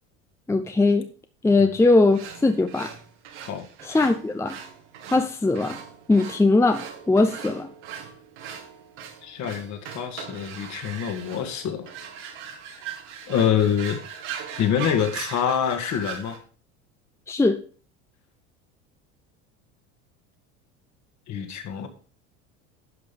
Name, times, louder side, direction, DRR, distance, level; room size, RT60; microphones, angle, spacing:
voice 1, 0.5-1.1 1.4-2.9 3.8-4.6 5.1-5.8 6.1-7.7 17.3-17.6, left 2 dB, 10° left, 8 dB, 0.7 m, -20 dB
sound 1, 2.1-16.4, right 7 dB, 80° right, 2.2 m, -40 dB
voice 2, 9.2-11.9 13.3-14.0 14.6-16.4 21.3-21.9, left 8 dB, 50° left, 6 dB, 2.1 m, -26 dB
11.0 x 5.3 x 5.3 m, 0.40 s
supercardioid pair, 90°, 36 cm